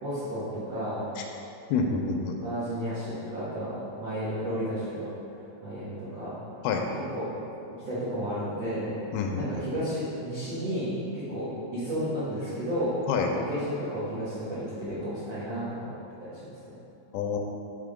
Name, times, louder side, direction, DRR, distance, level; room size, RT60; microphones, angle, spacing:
voice 1, 0.0-1.1 2.4-5.1 5.6-6.3 7.1-7.4 7.8-9.0 9.4-13.0 13.4-15.9 16.2-16.6, equal, 75° right, -13 dB, 1.5 m, -32 dB
voice 2, 1.7-2.4 6.6-6.8 9.1-9.5 13.1-13.3 17.1-17.4, left 5 dB, 85° left, 2 dB, 2.9 m, -27 dB
7.5 x 3.7 x 5.0 m, 2.8 s
omnidirectional pair, 5.5 m